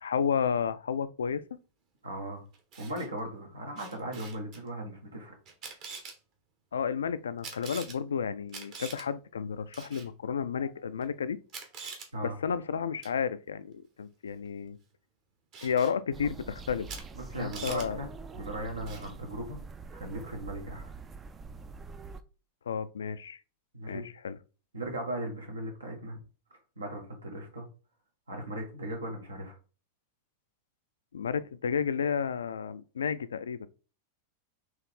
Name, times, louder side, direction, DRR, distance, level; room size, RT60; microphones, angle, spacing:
voice 1, 0.0-1.4 6.7-11.4 12.2-14.8 15.6-16.9 17.4-18.0 22.7-23.4 23.9-24.4 31.1-33.7, left 7 dB, 70° left, 0.3 m, -32 dB
voice 2, 2.0-2.4 2.8-5.3 12.1-12.4 17.1-18.1 18.3-19.6 19.9-20.9 23.7-24.1 24.7-26.2 26.8-27.6 28.3-29.6, right 1 dB, 75° right, 1.3 m, -38 dB
Camera, 2.5-3.1 3.8-4.6 5.5-6.2 7.4-8.0 8.5-9.1 9.7-10.1 11.0-11.1 11.5-12.1 13.0-13.2 15.5-15.9 16.9-17.0 17.3-17.9 18.9-19.1, right 5 dB, 40° right, 1.2 m, -43 dB
sound 1, 16.1-22.2, right 4 dB, 20° right, 0.4 m, -45 dB
4.6 x 3.1 x 3.6 m
figure-of-eight pair, 90°, 0 cm